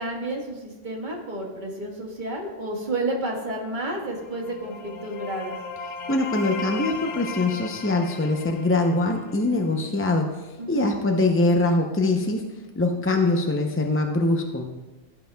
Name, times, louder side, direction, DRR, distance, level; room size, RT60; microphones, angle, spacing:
voice 1, 0.0-5.6 10.6-10.9, right 2 dB, 40° right, 0 dB, 1.6 m, -31 dB
sound 1, 4.0-9.7, left 5 dB, 65° left, 0.7 m, -36 dB
voice 2, 6.1-10.3 10.7-12.4 12.8-14.7, left 2 dB, 20° left, 2 dB, 0.4 m, -23 dB
16.0 x 8.0 x 2.3 m, 1.2 s
omnidirectional pair, 1.3 m